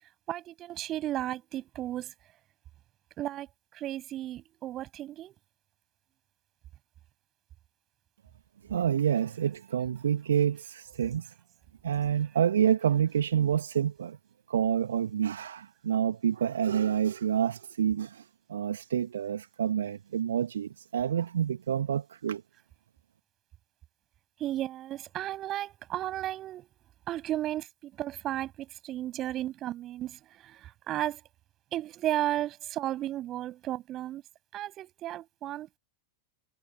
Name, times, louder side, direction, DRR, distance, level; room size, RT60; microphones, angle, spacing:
voice 1, 0.3-2.1 3.2-3.5 3.7-5.4 24.4-26.7 27.1-31.2 31.7-34.2 34.5-35.8, right 13 dB, 35° right, 7.7 m, -34 dB
voice 2, 8.7-11.3 11.8-14.2 14.5-22.4, right 9 dB, 65° right, 1.8 m, -28 dB
figure-of-eight pair, 90°, 0 cm